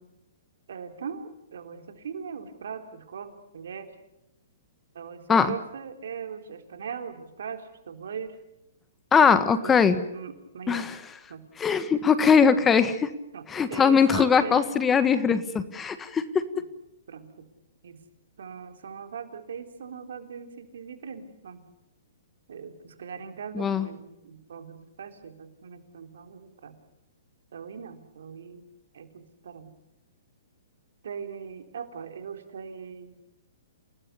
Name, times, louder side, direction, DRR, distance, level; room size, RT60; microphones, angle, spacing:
voice 1, 0.7-3.9 4.9-8.4 9.6-10.9 11.3-11.4 13.3-14.7 15.1-15.2 16.5-16.6 17.1-17.5 17.8-18.0 18.4-21.7 22.5-26.8 27.5-28.7 28.9-29.7 31.0-33.2, right 6 dB, 70° right, 7 dB, 3.7 m, -40 dB
voice 2, 9.1-10.0 10.7-11.0 11.6-13.1 13.5-16.4 23.5-23.9, left 6 dB, 15° left, 12 dB, 1.6 m, -21 dB
28.5 x 19.0 x 7.0 m, 0.88 s
hypercardioid pair, 130°, 0 cm